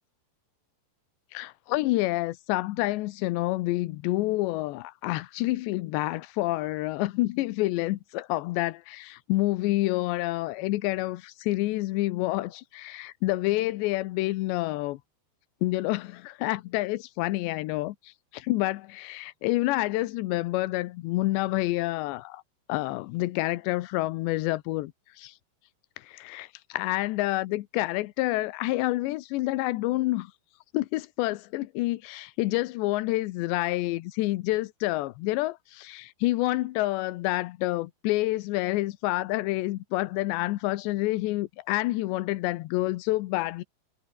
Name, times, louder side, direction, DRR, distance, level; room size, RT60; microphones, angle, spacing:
voice 1, 1.3-15.0 15.6-22.4 22.7-24.9 25.2-25.3 26.0-30.3 30.7-43.6, left 18 dB, 90° left, 3.0 m, -28 dB
omnidirectional pair, 5.1 m